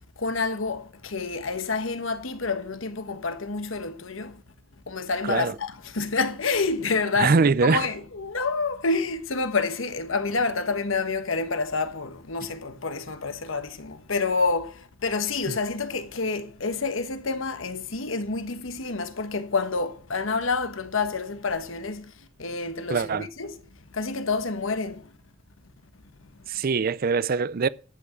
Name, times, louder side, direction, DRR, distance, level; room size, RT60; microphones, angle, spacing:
voice 1, 0.2-4.4 4.9-23.6 23.9-25.1, left 4 dB, 70° left, 1.2 m, -28 dB
voice 2, 5.2-5.6 7.2-7.9 15.5-15.6 22.9-23.3 26.5-27.7, right 5 dB, 45° right, 0.5 m, -23 dB
13.5 x 6.1 x 7.7 m
head